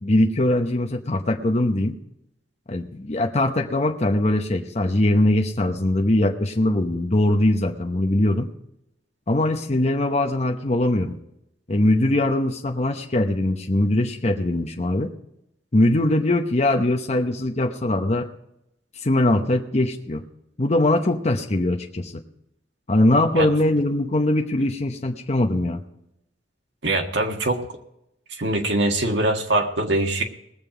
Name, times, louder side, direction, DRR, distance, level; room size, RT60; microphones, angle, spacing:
voice 1, 0.0-2.0 2.7-8.5 9.3-11.2 11.7-15.1 15.7-18.3 19.0-20.2 20.6-22.2 22.9-25.8, left 1 dB, 35° left, 3 dB, 0.9 m, -21 dB
voice 2, 26.8-27.6 28.3-30.2, right 2 dB, 70° right, 3 dB, 1.6 m, -22 dB
19.5 x 7.5 x 4.9 m, 0.82 s
head